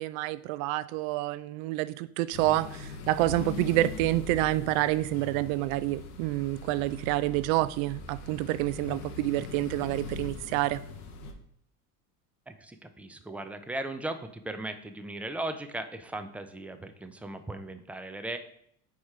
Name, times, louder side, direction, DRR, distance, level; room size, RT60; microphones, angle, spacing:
voice 1, 0.0-10.8, right 16 dB, 65° right, 0.5 m, -28 dB
sound 1, 2.3-11.3, left 4 dB, 85° left, 1.0 m, -41 dB
voice 2, 12.5-18.4, right 2 dB, 5° right, 0.4 m, -37 dB
4.8 x 4.2 x 4.7 m
hypercardioid pair, 85°, 43 cm